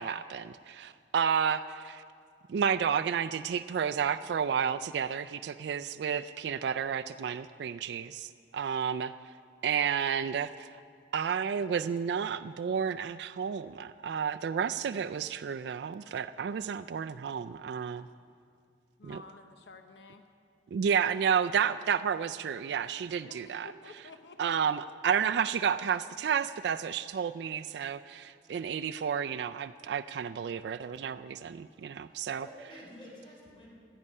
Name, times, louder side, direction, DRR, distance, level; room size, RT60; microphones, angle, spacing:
voice 1, 0.0-2.0 2.5-9.1 9.6-10.7 11.1-18.1 19.0-19.2 20.7-23.7 24.4-32.5, right 7 dB, 65° right, 11 dB, 0.3 m, -31 dB
voice 2, 19.0-20.3 23.2-25.0, left 3 dB, 75° left, 6 dB, 0.8 m, -51 dB
voice 3, 32.0-33.7, equal, 30° left, -4 dB, 4.0 m, -50 dB
17.0 x 11.0 x 5.4 m, 2.3 s
head